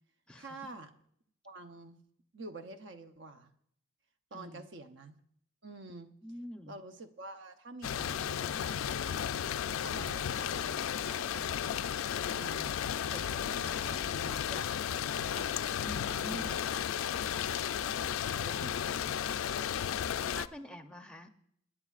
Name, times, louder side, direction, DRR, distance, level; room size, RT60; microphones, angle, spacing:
voice 1, 0.4-0.9 1.4-2.0 2.3-3.5 4.3-5.2 5.6-6.1 6.7-9.4 9.8-11.9 12.3-12.7 13.1-15.6 16.1-16.6 18.2-19.2, right 2 dB, 60° right, 8 dB, 0.8 m, -48 dB
voice 2, 4.3-4.7 6.2-6.8 15.8-16.6 20.3-21.3, equal, 5° left, 6 dB, 0.6 m, -45 dB
sound 1, 7.8-20.5, left 9 dB, 80° left, 0.4 m, -34 dB
26.0 x 10.0 x 2.4 m, 0.70 s
head